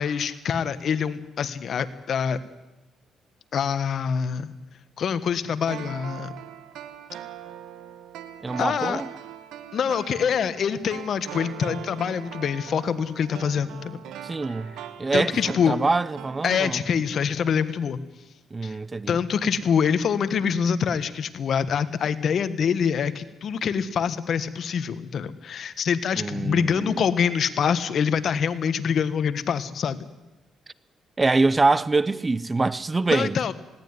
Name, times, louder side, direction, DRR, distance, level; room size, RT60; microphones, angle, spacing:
voice 1, 0.0-2.4 3.5-4.5 5.0-6.3 8.6-9.0 9.7-14.0 15.1-15.8 16.4-18.0 18.6-18.8 19.1-30.1 33.1-33.5, left 7 dB, 60° left, 1.4 m, -25 dB
sound 1, 5.7-17.3 17.6-17.7, right 10 dB, 85° right, 1.6 m, -41 dB
voice 2, 8.4-9.1 14.2-14.7 15.0-16.8 18.5-19.2 26.2-27.0 31.2-33.4, right 3 dB, 25° right, 0.7 m, -24 dB
19.5 x 17.5 x 9.7 m
cardioid pair, 90°, 0 cm